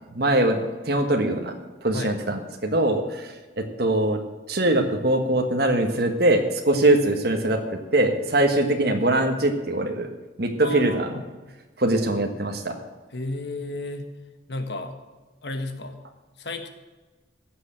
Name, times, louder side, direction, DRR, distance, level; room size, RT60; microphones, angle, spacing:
voice 1, 0.1-1.5 1.8-4.2 4.5-7.6 7.9-10.1 10.4-11.1 11.8-12.7, right 1 dB, 55° right, 3 dB, 1.5 m, -22 dB
voice 2, 10.6-11.3 13.1-14.1 14.5-15.0 15.4-16.0 16.4-16.7, left 2 dB, 65° left, 6 dB, 1.5 m, -33 dB
16.0 x 6.8 x 7.6 m, 1.2 s
head